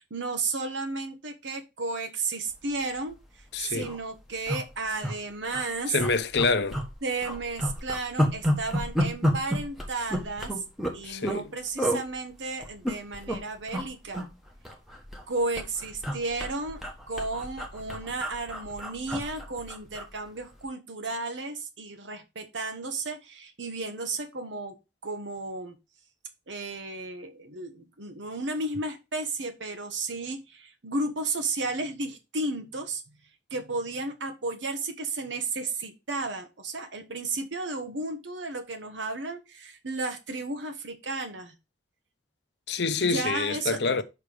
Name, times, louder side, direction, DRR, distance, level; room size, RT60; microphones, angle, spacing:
voice 1, 0.0-5.9 7.0-10.6 10.9-14.3 15.3-16.8 17.1-24.8 25.0-25.7 26.5-33.0 33.5-41.5 43.0-43.8, right 3 dB, 85° right, 1.2 m, -33 dB
sound 1, 3.0-3.2 3.5-3.6 3.7-4.0 4.5-5.1 5.5-5.6 6.0-6.9 7.2-11.4 11.8-12.0 12.6-13.4 13.7-13.9 14.1-15.3 15.6-20.1 20.4-20.6, equal, ahead, 1.3 m, -30 dB
voice 2, 3.5-3.9 5.9-6.8 11.0-11.5 42.7-44.0, left 4 dB, 65° left, 0.7 m, -27 dB
5.9 x 4.7 x 5.0 m
head